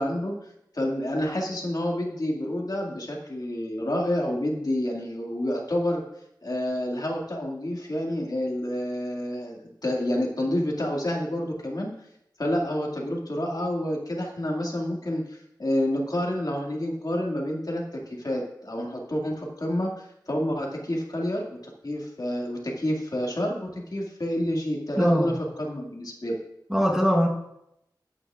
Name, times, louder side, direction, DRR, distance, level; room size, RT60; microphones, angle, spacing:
voice 1, 0.0-6.0 6.4-11.9 12.4-26.3, left 1 dB, 55° left, -1 dB, 2.2 m, -29 dB
voice 2, 25.0-25.3 26.7-27.3, equal, 5° right, -1 dB, 1.2 m, -21 dB
14.0 x 8.9 x 2.5 m, 0.79 s
wide cardioid pair, 60°, 8 cm